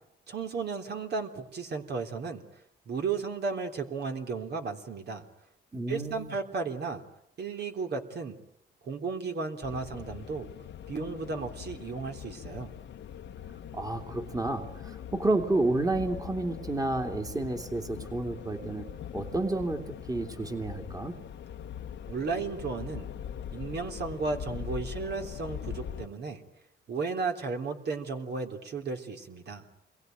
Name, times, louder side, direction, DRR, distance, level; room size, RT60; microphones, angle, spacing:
voice 1, 0.3-2.4 2.9-5.2 5.9-7.0 7.4-8.4 8.8-10.5 10.9-12.7 22.1-23.1 23.5-26.4 26.9-29.7, right 4 dB, 55° right, 4 dB, 3.5 m, -34 dB
voice 2, 5.7-6.3 13.7-18.9 19.1-21.2, right 2 dB, 20° right, 5 dB, 2.8 m, -30 dB
sound 1, 9.6-26.1, left 9 dB, 65° left, 1.3 m, -42 dB
28.0 x 22.5 x 9.4 m, 0.77 s
cardioid pair, 90°, 20 cm